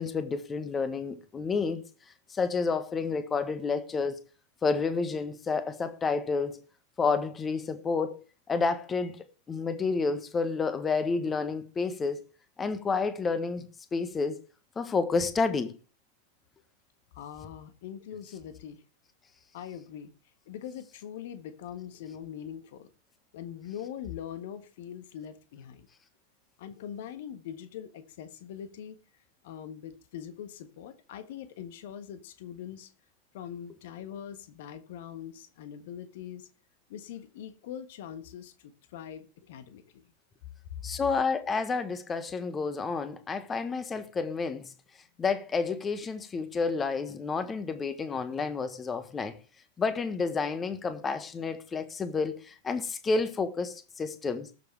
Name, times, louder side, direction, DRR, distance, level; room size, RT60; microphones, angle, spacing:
voice 1, 0.0-1.8 2.3-4.2 4.6-6.6 7.0-12.2 12.6-14.4 14.7-15.7 40.8-44.7 45.2-49.4 49.8-54.5, left 4 dB, 20° left, 1.4 m, -30 dB
voice 2, 17.1-18.8 19.5-20.1 20.5-22.9 23.3-25.9 26.6-29.0 29.4-32.9 33.3-36.5 36.9-40.1 40.8-40.9, left 9 dB, 55° left, 1.5 m, -42 dB
19.5 x 7.1 x 3.4 m
figure-of-eight pair, 90°, 0 cm